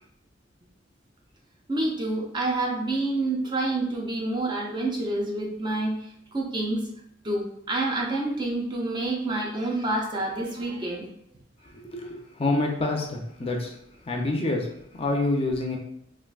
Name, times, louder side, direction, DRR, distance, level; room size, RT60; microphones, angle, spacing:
voice 1, 1.7-6.0 6.3-6.8 7.2-11.1, right 2 dB, 25° right, 0 dB, 0.5 m, -28 dB
voice 2, 11.9-13.8 14.1-14.7 14.9-15.8, left 2 dB, 30° left, 1 dB, 0.5 m, -27 dB
3.5 x 2.5 x 2.3 m, 0.74 s
head